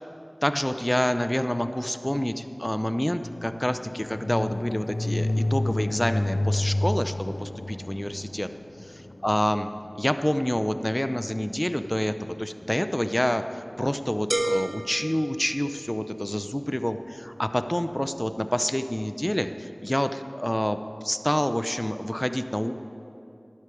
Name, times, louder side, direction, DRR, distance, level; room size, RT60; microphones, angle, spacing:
voice 1, 0.4-8.5 9.2-9.7 9.9-22.7, equal, 20° left, 10 dB, 0.5 m, -27 dB
sound 1, 1.8-11.7, left 1 dB, 65° left, 0.4 m, -31 dB
sound 2, 14.3-16.2, right 1 dB, 55° right, 1.2 m, -31 dB
12.0 x 12.0 x 5.0 m, 2.9 s
wide cardioid pair, 40°, 0 cm